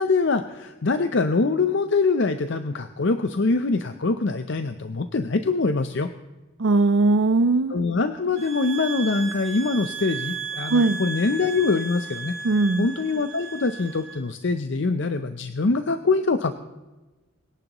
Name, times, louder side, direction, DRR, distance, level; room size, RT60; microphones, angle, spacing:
voice 1, 0.0-6.1 7.7-12.3 12.8-16.6, left 3 dB, 60° left, 9 dB, 0.6 m, -24 dB
voice 2, 6.6-7.9 10.7-11.0 12.4-12.9, right 3 dB, 60° right, 10 dB, 0.5 m, -20 dB
sound 1, 8.4-14.2, right 5 dB, 45° right, 3.2 m, -35 dB
24.0 x 10.5 x 3.0 m, 1.1 s
head